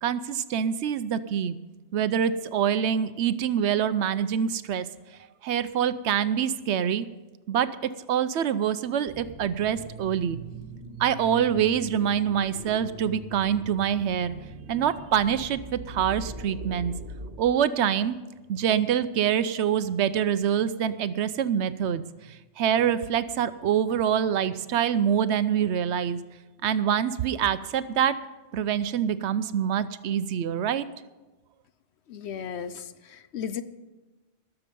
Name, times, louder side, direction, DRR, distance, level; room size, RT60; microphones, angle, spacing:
voice 1, 0.0-1.6 1.9-4.9 5.4-7.1 7.5-7.8 8.1-10.4 11.0-14.3 14.7-16.9 17.4-18.2 18.5-22.0 22.3-26.2 26.6-28.2 28.5-30.9, right 9 dB, 70° right, 14 dB, 0.9 m, -25 dB
sound 1, 9.1-17.4, right 2 dB, 55° right, 2.1 m, -41 dB
voice 2, 32.1-33.6, left 8 dB, 70° left, 12 dB, 0.9 m, -35 dB
20.0 x 6.9 x 5.3 m, 1.2 s
omnidirectional pair, 1.2 m